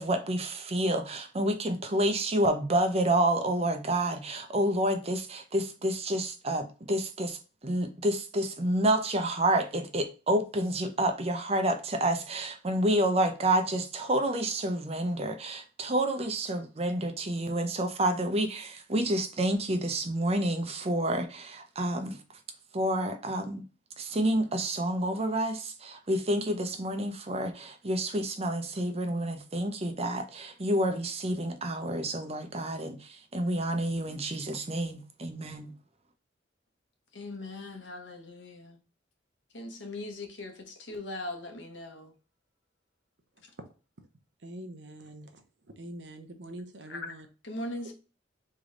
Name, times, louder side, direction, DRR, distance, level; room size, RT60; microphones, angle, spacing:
voice 1, 0.0-7.4 7.6-22.2 22.7-23.6 24.0-35.7, right 1 dB, 35° right, 0.7 m, -29 dB
voice 2, 37.1-38.8 39.5-42.1 46.9-47.1 47.4-47.9, left 2 dB, 75° left, 1.2 m, -40 dB
voice 3, 44.4-45.4 45.8-47.3, right 1 dB, 70° right, 0.9 m, -44 dB
3.7 x 3.4 x 3.8 m
head